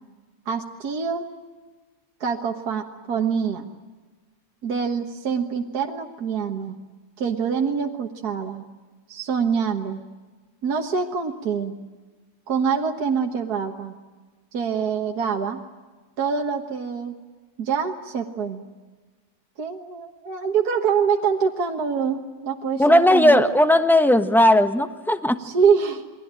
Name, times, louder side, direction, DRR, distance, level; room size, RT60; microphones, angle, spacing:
voice 1, 0.5-1.3 2.2-3.7 4.6-6.8 7.2-8.6 9.1-10.0 10.6-11.7 12.5-13.9 14.5-15.6 16.2-17.2 17.6-18.6 19.6-23.4 25.4-26.1, right 6 dB, 60° right, 2 dB, 1.9 m, -25 dB
voice 2, 22.8-25.4, left 1 dB, ahead, 9 dB, 0.9 m, -17 dB
28.5 x 21.0 x 8.9 m, 1.4 s
omnidirectional pair, 1.9 m